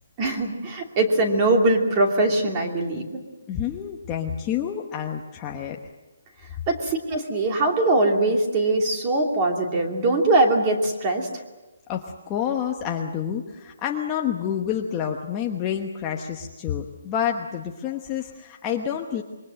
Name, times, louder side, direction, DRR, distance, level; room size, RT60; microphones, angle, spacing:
voice 1, 0.2-3.2 6.7-11.4, right 2 dB, 20° right, 2 dB, 2.8 m, -22 dB
voice 2, 3.5-5.8 11.9-19.2, left 9 dB, 15° left, 1 dB, 1.1 m, -28 dB
26.5 x 23.0 x 7.7 m, 1.1 s
hypercardioid pair, 175°, 0 cm